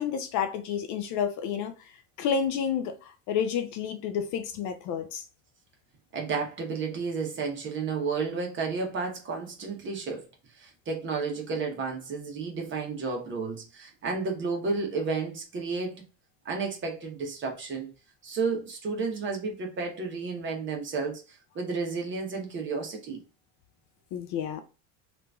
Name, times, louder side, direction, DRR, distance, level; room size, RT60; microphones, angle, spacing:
voice 1, 0.0-1.7 2.2-5.2 24.1-24.6, left 7 dB, 50° left, 0.5 m, -30 dB
voice 2, 6.1-10.2 10.6-16.0 16.4-17.9 18.2-23.2, right 4 dB, 30° right, 1.0 m, -32 dB
2.9 x 2.5 x 3.4 m
supercardioid pair, 130°, 40 cm